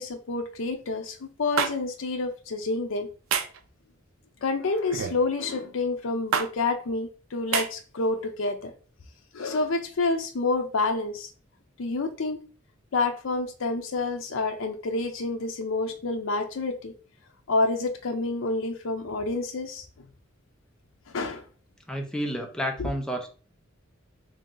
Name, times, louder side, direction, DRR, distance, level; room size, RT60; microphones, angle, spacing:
voice 1, 0.0-3.1 4.4-8.7 9.3-11.3 11.8-12.4 12.9-16.9 17.5-19.9 21.1-21.4 22.8-22.9, left 3 dB, 80° left, 5 dB, 0.5 m, -28 dB
sound 1, 1.6-1.7 3.3-3.6 4.9-5.2 6.3-6.5 7.5-7.7, right 6 dB, 80° right, 0.5 m, -26 dB
voice 2, 21.9-23.3, equal, 5° left, 1 dB, 0.6 m, -30 dB
3.1 x 2.8 x 3.7 m, 0.38 s
head